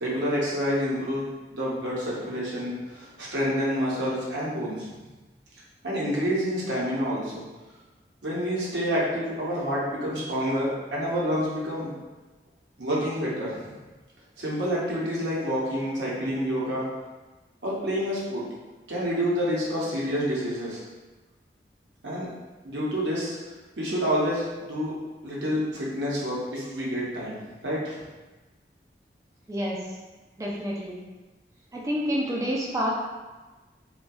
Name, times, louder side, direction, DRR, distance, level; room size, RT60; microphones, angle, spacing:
voice 1, 0.0-4.9 5.8-7.4 8.2-11.9 12.8-13.7 14.4-16.8 17.6-18.4 18.9-20.8 22.0-22.3 22.6-23.4 23.8-24.9 25.2-28.0, equal, 85° right, -6 dB, 0.7 m, -28 dB
voice 2, 29.5-29.8 30.4-31.0 31.7-32.9, equal, 20° right, -4 dB, 0.3 m, -28 dB
2.5 x 2.2 x 2.2 m, 1.2 s
head